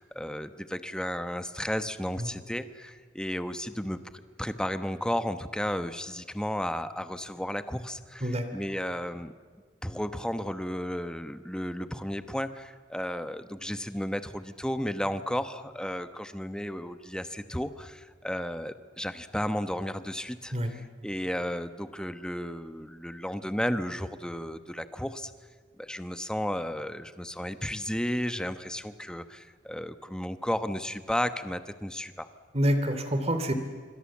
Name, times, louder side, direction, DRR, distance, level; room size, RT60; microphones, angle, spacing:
voice 1, 0.0-9.3 9.8-25.3 25.8-32.3, equal, 5° left, 10 dB, 1.1 m, -33 dB
voice 2, 32.5-33.5, equal, 35° right, 8 dB, 2.8 m, -27 dB
26.0 x 25.0 x 7.4 m, 1.5 s
head